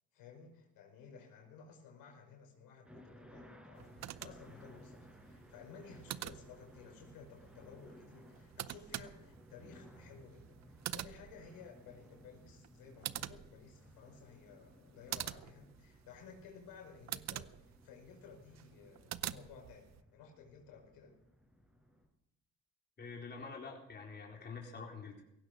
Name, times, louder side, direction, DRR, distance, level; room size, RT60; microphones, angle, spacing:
voice 1, 0.1-21.2, left 6 dB, 80° left, 2 dB, 5.2 m, -56 dB
sound 1, 2.8-22.1, equal, 5° right, 5.3 m, -59 dB
sound 2, 3.8-20.0, right 12 dB, 50° right, 0.7 m, -47 dB
voice 2, 23.0-25.2, left 4 dB, 30° left, -1 dB, 4.3 m, -47 dB
17.5 x 16.0 x 5.1 m, 0.81 s
cardioid pair, 95°, 34 cm